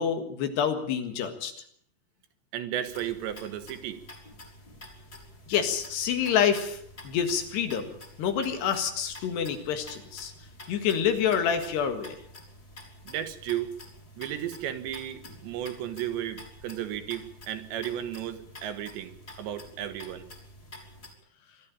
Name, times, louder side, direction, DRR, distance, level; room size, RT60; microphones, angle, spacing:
voice 1, 0.0-1.5 5.5-6.8 7.0-7.9 8.2-10.3 10.7-12.2, left 8 dB, 70° left, 8 dB, 3.7 m, -27 dB
voice 2, 2.5-4.0 13.1-13.7 14.2-20.3, right 11 dB, 75° right, 9 dB, 3.5 m, -34 dB
sound 1, 2.9-21.1, left 1 dB, 20° left, 3.9 m, -49 dB
24.0 x 13.0 x 8.8 m, 0.67 s
omnidirectional pair, 5.4 m